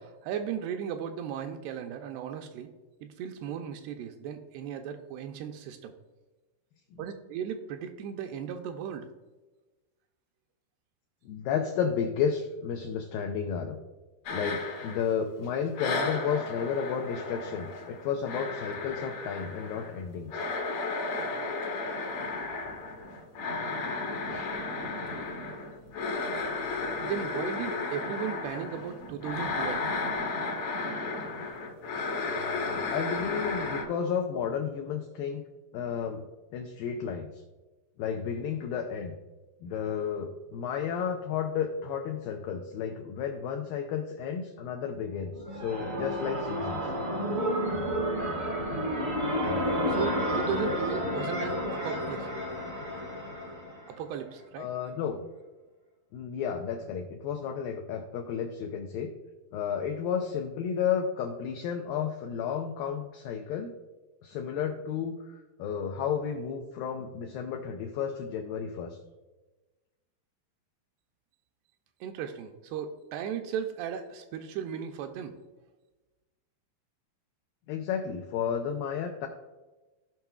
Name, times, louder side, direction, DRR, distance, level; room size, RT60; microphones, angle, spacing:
voice 1, 0.0-2.7 3.0-5.9 7.0-9.1 27.0-29.8 49.9-51.6 51.8-52.3 54.0-54.7 72.0-75.3, right 8 dB, 85° right, 6 dB, 2.4 m, -36 dB
voice 2, 11.3-13.8 14.3-20.5 32.3-35.4 35.7-36.2 36.5-37.3 38.0-39.2 39.6-46.9 54.6-55.2 56.1-59.1 59.5-63.7 64.2-69.0 77.7-79.3, left 7 dB, 85° left, 3 dB, 2.0 m, -32 dB
sound 1, 14.3-15.5 15.8-33.8, left 3 dB, 65° left, 1.8 m, -34 dB
sound 2, 45.2-54.0, equal, 55° right, 0.9 m, -31 dB
16.5 x 5.5 x 2.3 m, 1.2 s
omnidirectional pair, 4.8 m